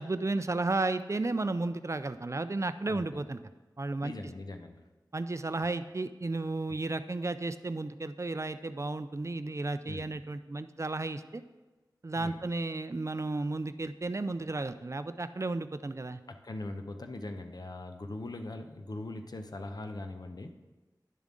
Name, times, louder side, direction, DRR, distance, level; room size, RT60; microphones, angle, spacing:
voice 1, 0.0-3.4 3.8-4.1 5.1-11.4 12.0-16.2, right 2 dB, 40° right, 12 dB, 0.4 m, -33 dB
voice 2, 2.9-3.2 4.0-4.8 6.7-6.8 9.9-10.2 12.2-12.4 16.3-20.6, left 2 dB, 60° left, 6 dB, 0.7 m, -41 dB
10.5 x 7.2 x 3.8 m, 1.2 s
wide cardioid pair, 50°, 8 cm